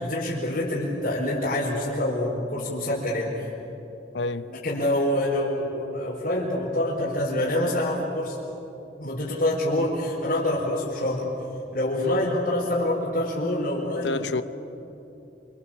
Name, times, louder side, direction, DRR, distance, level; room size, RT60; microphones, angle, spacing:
voice 1, 0.0-3.5 4.6-8.4 9.0-11.3 11.7-14.2, left 1 dB, 50° left, 4.6 m, -26 dB
voice 2, 4.1-4.5 12.0-12.2 14.0-14.4, left 3 dB, 80° left, 0.9 m, -28 dB
26.5 x 26.0 x 7.4 m
head